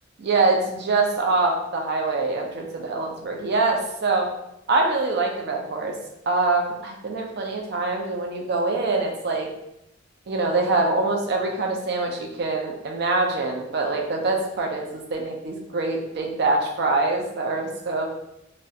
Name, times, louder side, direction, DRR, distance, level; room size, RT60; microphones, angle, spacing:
voice 1, 0.2-4.3 4.7-5.9 6.3-9.5 10.3-18.1, right 3 dB, 55° right, 1 dB, 0.4 m, -24 dB
2.3 x 2.1 x 2.6 m, 0.82 s
head